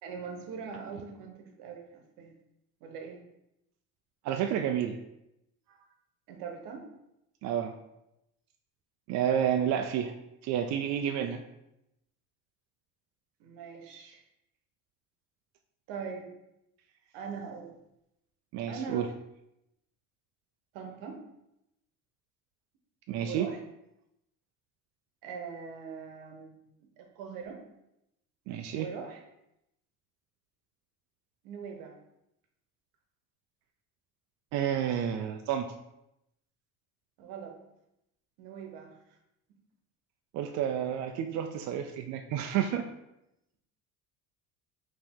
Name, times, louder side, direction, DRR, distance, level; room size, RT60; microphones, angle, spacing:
voice 1, 0.0-2.3 2.8-3.2 6.3-6.9 13.4-14.2 15.9-16.3 17.1-17.7 18.7-19.1 20.7-21.2 23.2-23.6 25.2-26.6 27.0-27.6 28.7-29.2 31.4-32.0 37.2-37.6 38.4-39.0, right 6 dB, 85° right, 3 dB, 0.9 m, -41 dB
voice 2, 4.2-5.0 7.4-7.7 9.1-10.1 10.4-11.4 18.5-19.1 23.1-23.5 28.5-28.9 34.5-35.7 40.3-42.8, right 9 dB, 55° right, 5 dB, 0.4 m, -30 dB
5.1 x 2.9 x 3.5 m, 0.85 s
cardioid pair, 140°, 34 cm